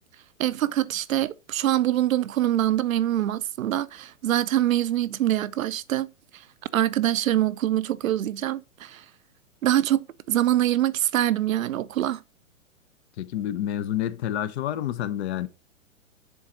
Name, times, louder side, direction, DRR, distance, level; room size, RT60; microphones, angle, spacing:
voice 1, 0.4-6.1 6.7-9.0 9.6-12.2, right 13 dB, 80° right, 0.6 m, -24 dB
voice 2, 13.2-15.5, left 11 dB, 55° left, 0.8 m, -28 dB
7.1 x 3.9 x 4.1 m
hypercardioid pair, 125°, 40 cm